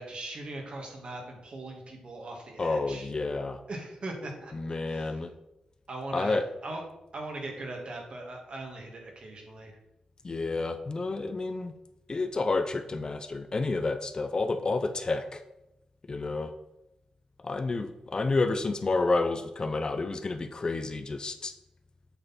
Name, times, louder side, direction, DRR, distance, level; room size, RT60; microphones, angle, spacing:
voice 1, 0.0-3.1 3.7-4.5 4.9-5.2 5.9-6.8 7.1-9.8, right 2 dB, 50° right, 1 dB, 2.0 m, -40 dB
voice 2, 2.6-3.6 4.5-5.3 6.1-6.4 10.2-11.7 12.1-15.4 16.1-16.5 17.4-21.5, left 3 dB, 35° left, 8 dB, 0.6 m, -30 dB
8.0 x 6.7 x 4.3 m, 0.90 s
cardioid pair, 90°, 2 cm